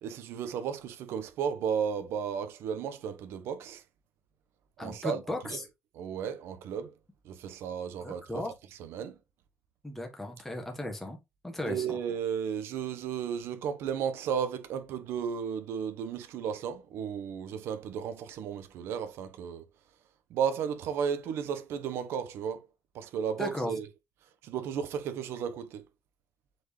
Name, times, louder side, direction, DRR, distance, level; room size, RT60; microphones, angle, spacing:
voice 1, 0.0-3.8 4.8-5.2 5.5-5.6 6.0-6.9 7.2-8.4 8.8-9.2 11.6-19.6 20.3-22.7 22.9-23.9 24.4-25.8, right 7 dB, 80° right, 1.2 m, -34 dB
voice 2, 4.8-5.7 8.0-8.5 9.8-11.2 11.4-12.0 23.4-23.7, left 1 dB, 5° left, 1.5 m, -36 dB
7.9 x 4.6 x 3.3 m
cardioid pair, 170°, 4 cm